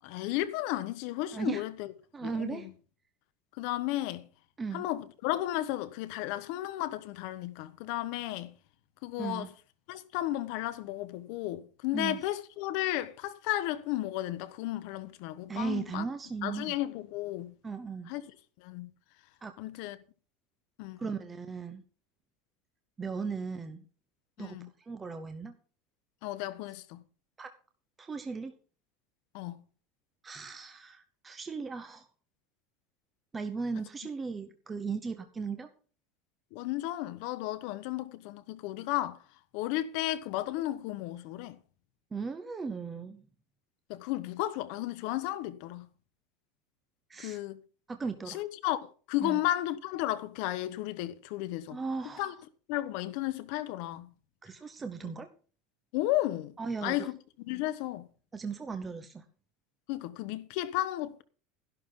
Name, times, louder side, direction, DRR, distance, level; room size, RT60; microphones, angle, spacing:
voice 1, 0.0-1.9 2.2-2.7 3.6-4.3 4.7-8.5 9.0-9.5 9.9-16.0 16.4-17.5 18.1-18.2 18.6-18.9 19.6-20.0 20.8-21.1 24.4-24.7 26.2-27.0 29.3-29.6 36.5-39.2 39.5-41.6 43.9-45.9 47.2-47.6 48.3-51.8 52.2-52.3 52.7-54.1 55.9-56.5 56.8-58.1 59.9-61.2, left 15 dB, 55° left, 1.2 m, -34 dB
voice 2, 1.3-1.6 2.1-2.7 4.6-4.9 9.2-9.5 11.9-12.2 15.5-16.8 17.6-18.1 19.4-19.5 21.0-21.8 23.0-23.8 24.4-25.5 27.4-27.5 28.0-28.5 30.2-32.1 33.3-35.7 42.1-43.2 47.1-47.4 47.9-48.4 49.2-49.4 51.7-52.3 54.4-55.3 56.6-57.1 58.3-59.2, right 5 dB, 15° right, 0.8 m, -37 dB
13.0 x 11.5 x 3.9 m
supercardioid pair, 165°, 0 cm